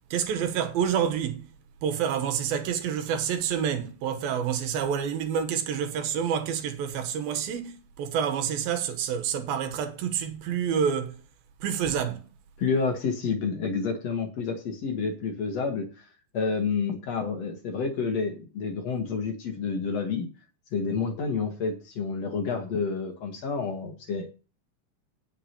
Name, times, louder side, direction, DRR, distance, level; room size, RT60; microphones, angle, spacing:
voice 1, 0.1-1.5 1.8-11.2 11.6-12.2, right 8 dB, 85° right, 3.0 m, -28 dB
voice 2, 12.6-16.1 16.3-20.3 20.7-24.3, left 5 dB, 55° left, 2.0 m, -29 dB
17.5 x 6.5 x 3.0 m
omnidirectional pair, 4.1 m